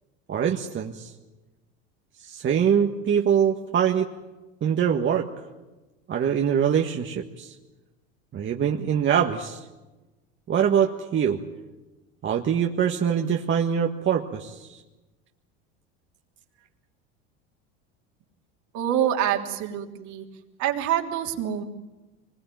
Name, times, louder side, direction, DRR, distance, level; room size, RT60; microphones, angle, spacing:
voice 1, 0.3-1.1 2.2-4.1 4.6-5.3 6.1-7.5 8.3-9.6 10.5-11.4 12.2-14.7, right 8 dB, 35° right, 2 dB, 1.6 m, -23 dB
voice 2, 18.7-20.3 20.6-21.6, right 10 dB, 60° right, 3 dB, 3.2 m, -26 dB
24.0 x 20.5 x 9.3 m, 1.1 s
supercardioid pair, 100°, 33 cm